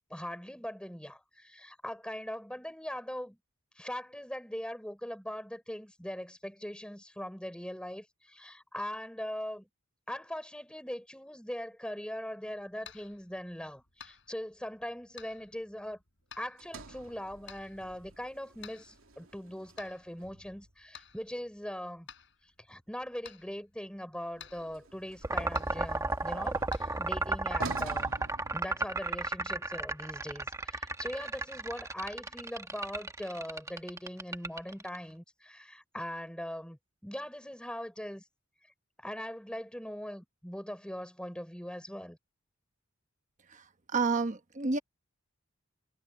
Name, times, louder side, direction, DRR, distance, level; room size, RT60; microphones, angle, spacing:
voice 1, 0.1-3.4 3.8-9.7 10.1-16.0 16.4-22.1 22.7-28.1 28.5-38.2 39.0-42.2, equal, 5° left, 3.7 m, -41 dB
sound 1, 12.4-27.1, left 7 dB, 60° left, 5.5 m, -56 dB
Sliding door, 16.6-20.8 24.3-29.3, right 3 dB, 75° right, 2.9 m, -48 dB
sound 2, 25.2-35.0, right 3 dB, 15° right, 1.3 m, -33 dB
voice 2, 43.9-44.8, right 4 dB, 35° right, 1.1 m, -29 dB
head